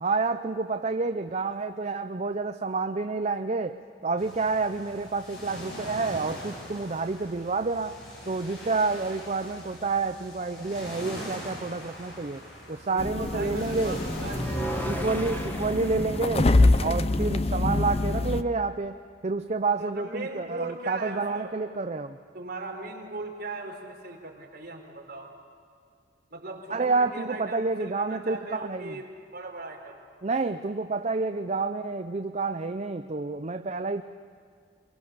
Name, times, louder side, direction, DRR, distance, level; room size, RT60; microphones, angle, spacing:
voice 1, 0.0-8.0 8.3-12.4 12.7-14.0 14.9-16.5 16.8-19.0 19.2-22.2 26.7-29.0 30.2-34.0, right 3 dB, 40° right, 8 dB, 0.6 m, -29 dB
sound 1, 4.2-15.4, equal, 65° left, 7.8 m, -42 dB
voice 2, 12.9-15.5 19.7-21.7 22.3-25.3 26.3-30.0, right 2 dB, 55° right, -1 dB, 4.1 m, -39 dB
sound 2, 13.0-18.4, left 2 dB, 35° left, 0.7 m, -25 dB
sound 3, 14.3-17.5, right 1 dB, 10° left, 1.8 m, -36 dB
23.5 x 23.0 x 6.9 m, 2.2 s
head